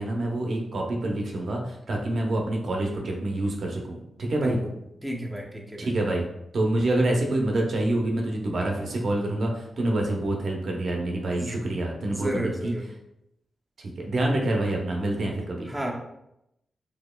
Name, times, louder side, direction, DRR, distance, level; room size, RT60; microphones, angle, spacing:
voice 1, 0.0-4.6 5.8-6.2 6.5-12.7 13.8-15.7, right 1 dB, 60° right, 0 dB, 0.6 m, -27 dB
voice 2, 4.4-4.7 5.0-5.9 11.3-11.6 12.1-12.8 15.7-15.9, right 1 dB, 10° right, -1 dB, 0.6 m, -32 dB
4.1 x 2.8 x 2.2 m, 0.82 s
cardioid pair, 90°, 0 cm